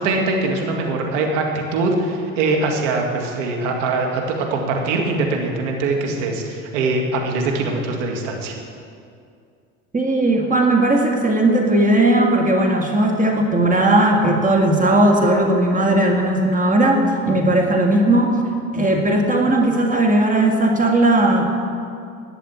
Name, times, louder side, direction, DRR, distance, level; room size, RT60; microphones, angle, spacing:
voice 1, 0.0-8.5, right 3 dB, 80° right, 1 dB, 2.2 m, -22 dB
voice 2, 9.9-18.4 18.7-21.4, right 1 dB, 20° right, 2 dB, 1.9 m, -17 dB
11.5 x 7.8 x 9.0 m, 2.3 s
hypercardioid pair, 70°, 37 cm